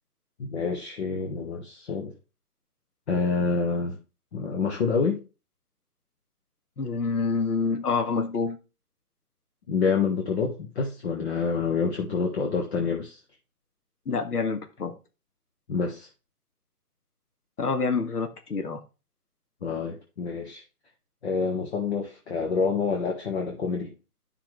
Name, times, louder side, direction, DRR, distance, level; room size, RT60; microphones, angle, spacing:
voice 1, 0.4-2.1 3.1-4.0 4.3-5.2 9.7-13.2 15.7-16.1 19.6-20.6 21.2-23.9, left 5 dB, 45° left, 1 dB, 1.7 m, -27 dB
voice 2, 6.8-8.6 14.1-14.9 17.6-18.8, left 4 dB, 75° left, 6 dB, 1.8 m, -27 dB
10.5 x 5.9 x 3.3 m, 0.31 s
hypercardioid pair, 155°, 46 cm